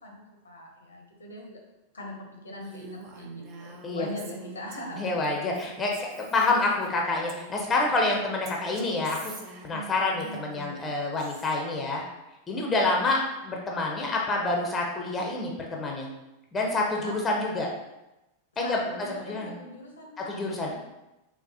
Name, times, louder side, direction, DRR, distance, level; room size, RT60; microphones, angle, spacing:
voice 1, 0.0-1.6 1.9-5.0 17.0-17.1 18.6-20.3, left 1 dB, 75° left, 0 dB, 0.7 m, -41 dB
Female speech woman speaking, 2.6-8.0 8.4-11.6, right 4 dB, 40° right, 0.4 m, -45 dB
voice 2, 5.0-9.3 9.6-12.0 12.5-16.1 16.5-17.7 18.6-18.8 19.2-19.5 20.3-20.7, left 2 dB, 20° left, 0 dB, 0.5 m, -27 dB
4.0 x 2.0 x 2.7 m, 0.95 s
figure-of-eight pair, 90°, 0 cm